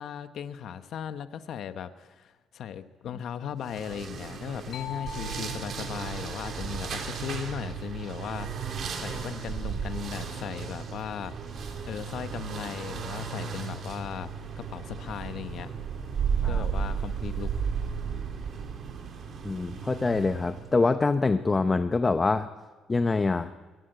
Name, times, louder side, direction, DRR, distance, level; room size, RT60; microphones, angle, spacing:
voice 1, 0.0-11.4 11.8-15.7 16.4-17.5, left 9 dB, 65° left, 10 dB, 1.1 m, -37 dB
sound 1, 3.6-20.8, right 6 dB, 55° right, 3.7 m, -34 dB
sound 2, 4.7-8.4, left 8 dB, 80° left, 1.3 m, -45 dB
voice 2, 19.4-22.5 22.9-23.5, left 3 dB, 25° left, 10 dB, 0.8 m, -25 dB
22.0 x 17.0 x 7.9 m, 1.4 s
cardioid pair, 100°, 0 cm